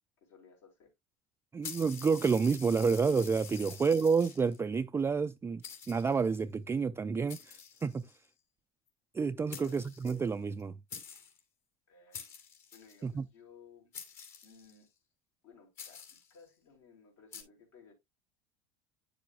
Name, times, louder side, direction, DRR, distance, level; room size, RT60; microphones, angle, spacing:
voice 1, 0.2-0.9 3.5-3.8 9.4-9.8 11.9-12.2 12.7-13.9 14.4-14.9 15.4-17.9, left 5 dB, 75° left, 4.3 m, -58 dB
voice 2, 1.5-8.0 9.1-10.8 13.0-13.3, right 5 dB, 15° right, 0.3 m, -29 dB
sound 1, 1.6-4.6 5.2-5.3 5.6-6.4 7.3-8.3 9.2-9.3 9.5-10.6 10.9-11.4 12.1-13.0 13.9-14.8 15.8-16.4 17.3-17.4, left 6 dB, 60° left, 2.9 m, -47 dB
9.7 x 6.9 x 2.2 m
hypercardioid pair, 95°, 16 cm